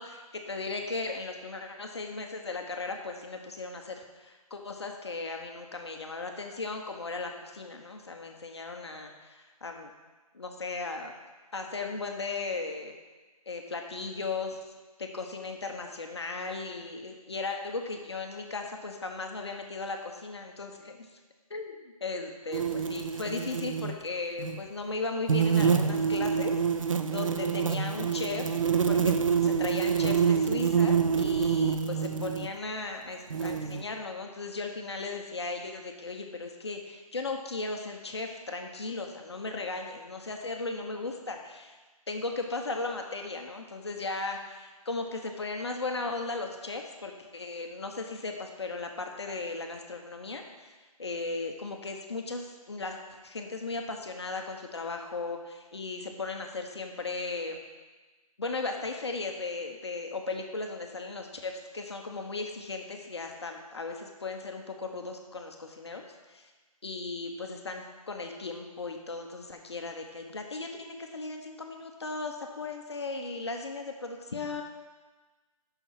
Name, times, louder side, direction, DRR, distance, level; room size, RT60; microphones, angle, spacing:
voice 1, 0.5-9.9 10.3-11.1 11.5-12.9 13.5-14.6 15.0-21.2 21.5-26.6 27.1-28.6 28.9-41.8 42.1-57.6 58.4-66.5 66.8-74.6, left 3 dB, 45° left, 3 dB, 0.9 m, -36 dB
sound 1, 22.5-23.9 24.4-24.6 25.3-32.5 33.3-33.8, right 6 dB, 60° right, 0.5 m, -26 dB
6.9 x 5.8 x 5.7 m, 1.3 s
hypercardioid pair, 175°, 19 cm